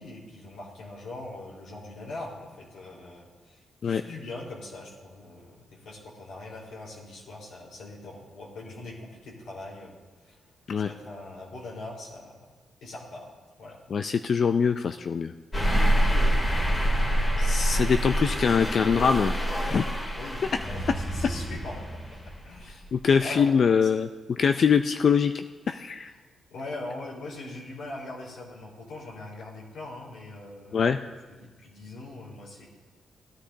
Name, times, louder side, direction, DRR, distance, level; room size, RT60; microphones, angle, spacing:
voice 1, 0.0-10.4 10.8-12.4 12.8-13.3 13.6-13.8 20.1-22.2 22.4-22.9 23.2-23.5 23.8-23.9 26.0-26.2 26.5-31.0 31.3-32.7, left 2 dB, 80° left, -4 dB, 3.9 m, -41 dB
voice 2, 13.9-15.3 17.4-19.9 22.9-24.1 24.4-26.1 30.7-31.0, left 6 dB, 55° left, 8 dB, 0.4 m, -23 dB
sound 1, 15.5-22.9, equal, 20° left, 2.4 m, -26 dB
19.0 x 10.0 x 2.7 m, 1.3 s
cardioid pair, 70°, 0 cm